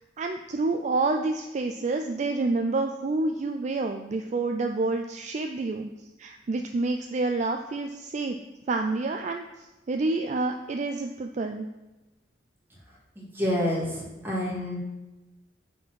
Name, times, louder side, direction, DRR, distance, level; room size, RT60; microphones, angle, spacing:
voice 1, 0.2-5.9 6.2-8.4 8.7-11.7, right 3 dB, 40° right, 5 dB, 0.4 m, -28 dB
voice 2, 13.2-14.8, left 1 dB, 15° right, -5 dB, 2.1 m, -28 dB
7.3 x 4.3 x 6.2 m, 1.1 s
head